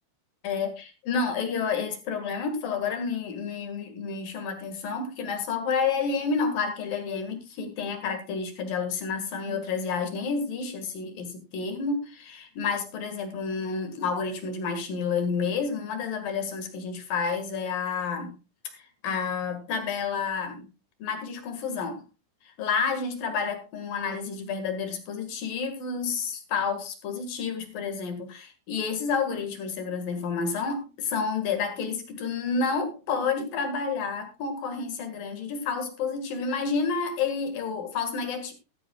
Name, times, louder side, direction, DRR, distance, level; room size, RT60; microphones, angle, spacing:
voice 1, 0.4-18.3 18.7-20.7 21.0-22.0 22.6-38.5, left 5 dB, 60° left, 6 dB, 3.2 m, -30 dB
14.0 x 13.5 x 2.3 m, 0.28 s
omnidirectional pair, 5.0 m